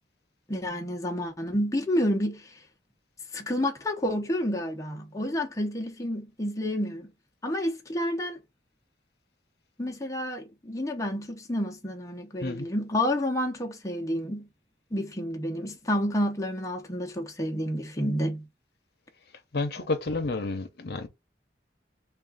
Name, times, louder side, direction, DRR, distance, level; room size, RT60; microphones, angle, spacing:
voice 1, 0.5-2.5 3.3-7.1 7.4-8.4 9.8-14.5 14.9-18.5, equal, 20° left, 0.7 m, -29 dB
voice 2, 19.5-21.1, left 3 dB, 65° left, 0.8 m, -30 dB
3.6 x 2.4 x 3.8 m
head